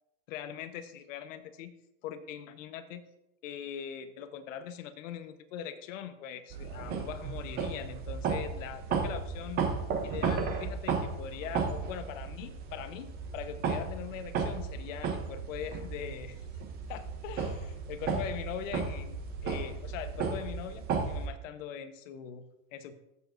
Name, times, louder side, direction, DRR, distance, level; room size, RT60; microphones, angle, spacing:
voice 1, 0.3-1.7 2.0-3.0 3.4-9.7 10.0-16.4 16.9-22.4 22.7-23.0, left 9 dB, 60° left, 10 dB, 1.0 m, -41 dB
sound 1, 6.5-21.3, right 5 dB, 20° right, 0.7 m, -34 dB
14.5 x 6.9 x 2.5 m, 0.86 s
supercardioid pair, 160°, 43 cm